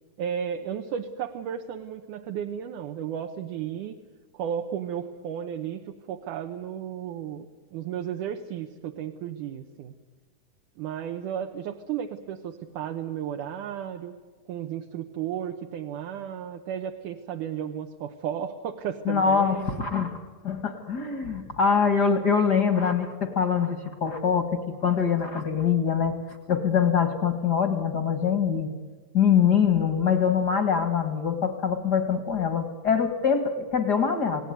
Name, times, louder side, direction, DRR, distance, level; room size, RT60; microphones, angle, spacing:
voice 1, 0.2-4.0 4.3-7.5 7.7-9.9 10.8-14.2 14.5-19.9, right 9 dB, 75° right, 4 dB, 2.4 m, -33 dB
voice 2, 19.1-26.2 26.5-28.7 29.1-34.5, left 7 dB, 45° left, 9 dB, 1.5 m, -24 dB
28.5 x 18.0 x 9.4 m, 1.4 s
omnidirectional pair, 4.0 m